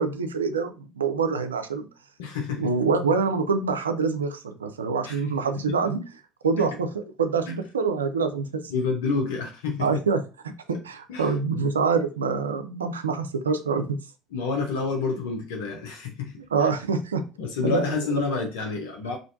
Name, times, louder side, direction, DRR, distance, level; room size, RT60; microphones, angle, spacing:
voice 1, 0.0-1.9 2.6-6.0 6.4-8.7 9.8-13.9 16.5-17.2 17.6-18.0, right 5 dB, 85° right, 8 dB, 0.3 m, -26 dB
voice 2, 2.2-2.7 5.0-5.2 5.6-5.8 6.6-6.7 7.5-7.6 8.7-10.0 11.1-11.4 14.3-16.7 17.4-19.2, left 4 dB, 75° left, 1 dB, 0.5 m, -29 dB
2.5 x 2.1 x 2.5 m, 0.32 s
hypercardioid pair, 65°, 0 cm